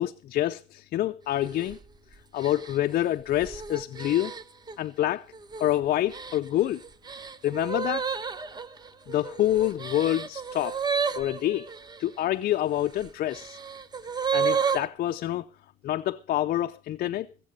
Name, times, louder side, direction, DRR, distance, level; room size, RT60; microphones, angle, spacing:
voice 1, 0.0-1.8 2.3-4.3 4.8-5.2 5.6-6.8 7.4-8.1 9.1-10.8 11.2-11.7 12.0-13.6 14.3-15.4 15.8-17.3, left 13 dB, 60° left, 0.6 m, -27 dB
sound 1, 1.4-1.8 2.4-4.8 5.3-5.7 6.1-12.0 12.8-14.9, right 6 dB, 25° right, 0.8 m, -32 dB
17.5 x 7.6 x 6.5 m
cardioid pair, 110°, 17 cm